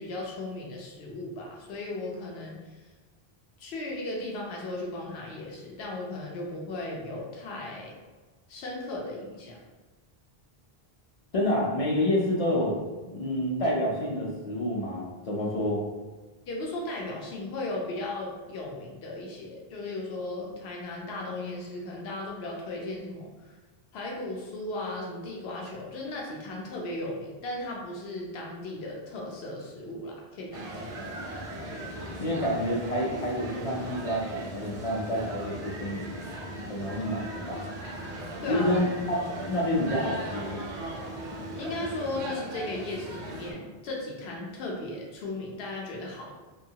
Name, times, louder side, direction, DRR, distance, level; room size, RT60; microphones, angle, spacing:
voice 1, 0.0-2.9 3.6-8.0 8.5-9.6 16.5-23.6 23.9-30.8 38.4-38.7 41.5-46.3, left 2 dB, 85° left, -2 dB, 0.8 m, -36 dB
voice 2, 11.3-12.8 13.0-15.8 32.2-36.2 36.7-37.6 38.5-40.7, left 1 dB, 45° left, -3 dB, 0.5 m, -28 dB
sound 1, 30.5-43.5, right 1 dB, 50° right, 0.5 m, -38 dB
2.7 x 2.3 x 2.7 m, 1.3 s
omnidirectional pair, 1.0 m